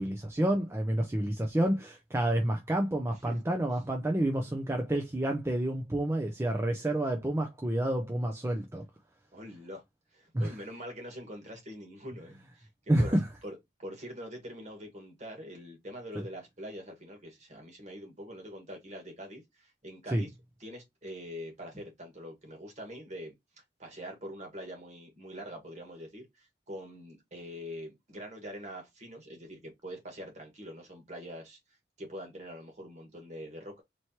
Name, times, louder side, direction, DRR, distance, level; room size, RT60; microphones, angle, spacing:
voice 1, 0.0-8.8 10.3-10.5 12.9-13.3 20.1-20.2, right 1 dB, 15° right, 0.5 m, -29 dB
voice 2, 9.3-9.8 10.1-12.7 13.0-13.1 13.4-20.3 20.6-23.3 23.8-31.6 32.0-33.8, equal, 40° right, 1.5 m, -44 dB
4.4 x 3.1 x 2.8 m
head